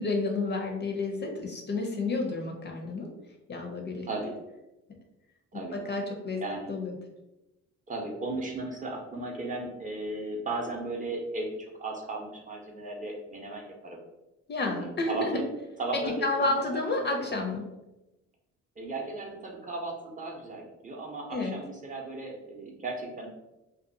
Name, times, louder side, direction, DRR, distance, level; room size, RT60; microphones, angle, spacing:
voice 1, 0.0-3.1 3.5-4.1 5.7-6.4 6.7-7.0 14.5-15.3 15.9-17.6 21.3-21.5, left 3 dB, 35° left, 2 dB, 0.4 m, -30 dB
voice 2, 6.4-6.8 7.9-11.5 11.8-14.0 14.7-15.4 15.8-16.6 16.9-17.5 18.8-23.3, right 2 dB, 25° right, -1 dB, 0.6 m, -36 dB
2.6 x 2.3 x 2.6 m, 0.97 s
cardioid pair, 90°, 30 cm